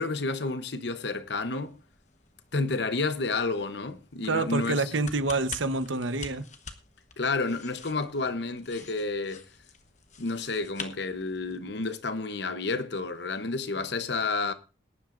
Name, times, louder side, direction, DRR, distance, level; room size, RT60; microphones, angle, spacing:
voice 1, 0.0-1.8 2.5-4.9 7.2-9.4 10.2-14.5, left 3 dB, 65° left, 0.9 m, -30 dB
sound 1, 1.1-11.7, left 5 dB, 40° left, 1.2 m, -47 dB
voice 2, 4.3-6.4, right 3 dB, 90° right, 1.0 m, -27 dB
21.0 x 10.5 x 2.6 m
head